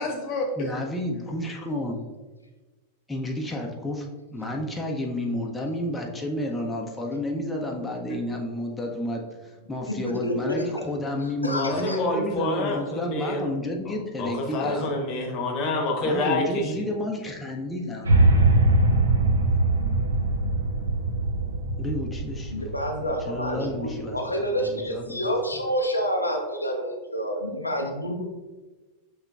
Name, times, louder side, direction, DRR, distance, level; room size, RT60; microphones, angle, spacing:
voice 1, 0.0-0.7 11.5-13.5 13.9-16.8 23.5-23.8 24.6-24.9, left 2 dB, 40° left, 2 dB, 0.9 m, -28 dB
voice 2, 0.6-2.0 3.1-4.1 4.3-14.9 16.0-18.1 21.8-22.8 23.3-24.2 24.4-24.5 24.9-25.3, left 1 dB, 10° left, 0 dB, 0.5 m, -31 dB
voice 3, 9.9-10.7 11.2-12.0 22.5-28.2, equal, 85° left, 1 dB, 0.4 m, -28 dB
sound 1, 18.1-24.2, right 2 dB, 70° right, 0.4 m, -22 dB
5.6 x 3.1 x 2.3 m, 1.2 s
figure-of-eight pair, 90°, 0 cm